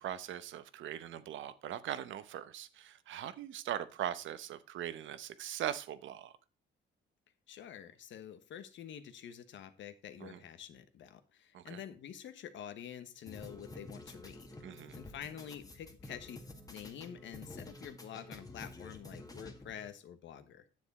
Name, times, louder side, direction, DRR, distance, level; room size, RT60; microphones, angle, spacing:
voice 1, 0.0-6.3 10.2-10.4 11.5-11.8 14.6-15.0, right 11 dB, 75° right, 0.8 m, -40 dB
voice 2, 7.5-14.5 14.9-16.4 16.7-20.6, left 9 dB, 70° left, 1.1 m, -48 dB
sound 1, 13.3-19.9, left 2 dB, 20° left, 1.6 m, -50 dB
9.5 x 7.2 x 4.1 m
cardioid pair, 90°, 20 cm